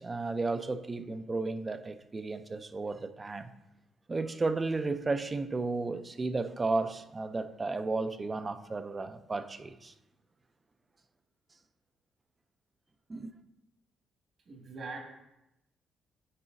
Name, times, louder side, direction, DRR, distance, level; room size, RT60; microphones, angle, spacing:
voice 1, 0.0-3.5 4.1-9.9 13.1-13.3, right 3 dB, 25° right, 0.5 m, -33 dB
voice 2, 14.5-15.0, right 3 dB, 55° right, 1.9 m, -41 dB
9.6 x 5.0 x 2.6 m
cardioid pair, 90°, 0 cm